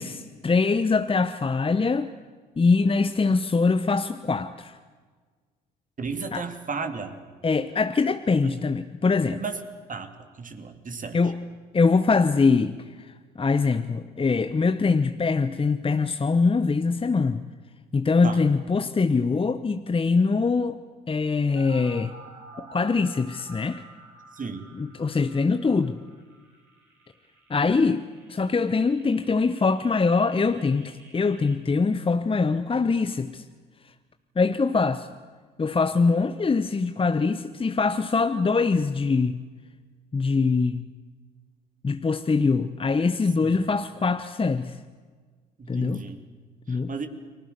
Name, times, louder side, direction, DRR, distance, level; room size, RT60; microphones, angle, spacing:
voice 1, 0.0-2.1 2.6-4.8 6.3-6.4 7.4-9.4 11.1-11.4 11.7-17.4 17.9-20.8 21.1-22.1 22.6-23.8 24.8-26.0 27.5-33.4 34.4-35.1 35.6-39.4 40.1-40.9 41.8-44.8 45.7-46.0 46.7-46.9, left 4 dB, 25° left, 10 dB, 1.1 m, -23 dB
voice 2, 6.0-7.2 8.4-8.6 9.3-9.6 9.9-11.3 18.2-18.4 24.3-24.7 43.4-43.6 45.6-46.2 46.7-47.1, right 4 dB, 40° right, 7 dB, 3.0 m, -34 dB
sound 1, 21.6-31.5, right 3 dB, 65° right, 7.7 m, -50 dB
30.0 x 20.0 x 6.8 m, 1.5 s
hypercardioid pair, 55°, 21 cm